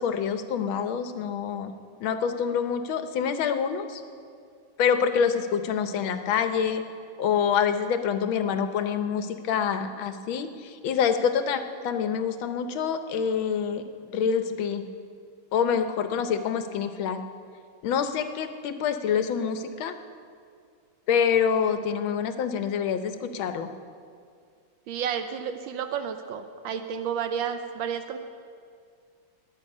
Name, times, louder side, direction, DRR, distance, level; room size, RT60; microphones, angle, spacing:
voice 1, 0.0-1.7 2.0-4.0 4.8-6.8 7.2-13.8 14.1-14.9 15.5-17.2 17.8-19.9 21.1-23.7, left 7 dB, 80° left, 9 dB, 1.6 m, -26 dB
voice 2, 24.9-28.2, right 7 dB, 80° right, 8 dB, 1.4 m, -31 dB
21.0 x 8.4 x 5.4 m, 2.3 s
omnidirectional pair, 2.2 m